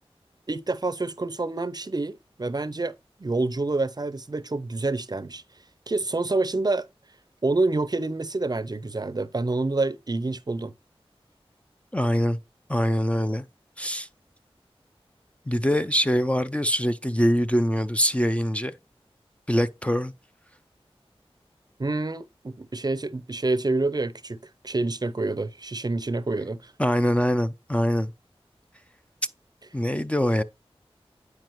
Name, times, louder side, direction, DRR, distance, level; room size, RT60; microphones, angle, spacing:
voice 1, 0.5-2.9 3.2-5.4 5.9-6.9 7.4-10.7 21.8-24.4 24.6-26.7, right 2 dB, 40° right, 0.6 m, -27 dB
voice 2, 11.9-12.4 12.7-13.4 13.8-14.1 15.5-18.7 19.5-20.1 26.8-28.1 29.7-30.4, equal, 10° left, 0.4 m, -23 dB
9.2 x 4.8 x 3.0 m
wide cardioid pair, 55°, 10 cm